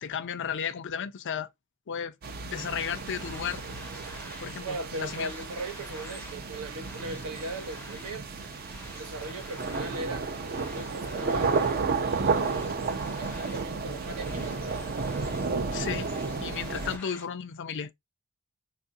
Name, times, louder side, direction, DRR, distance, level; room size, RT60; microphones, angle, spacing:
voice 1, 0.0-1.5 1.9-2.1 2.4-3.6 4.4-5.3 15.7-16.1 16.4-17.9, left 7 dB, 55° left, 0.4 m, -34 dB
sound 1, 2.2-17.0, right 4 dB, 45° right, 0.5 m, -32 dB
sound 2, 2.7-17.3, left 2 dB, 10° left, 0.6 m, -49 dB
voice 2, 4.6-8.3 8.9-12.5 13.2-14.8, right 2 dB, 85° right, 1.0 m, -39 dB
3.6 x 2.5 x 2.6 m
head